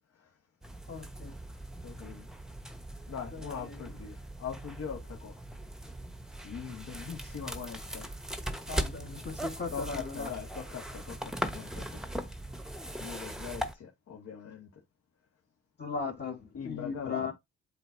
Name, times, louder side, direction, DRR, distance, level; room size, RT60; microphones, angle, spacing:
sound 1, 0.6-13.7, right 1 dB, ahead, 1.0 m, -40 dB
voice 1, 0.9-1.3 3.3-3.8 8.7-10.3 15.8-17.3, left 4 dB, 35° left, 1.8 m, -38 dB
voice 2, 1.8-2.3 3.1-5.3 6.4-8.1 9.7-12.3 13.0-14.7 16.5-17.3, left 7 dB, 55° left, 1.7 m, -41 dB
7.9 x 2.7 x 4.6 m
cardioid pair, 90°, 30 cm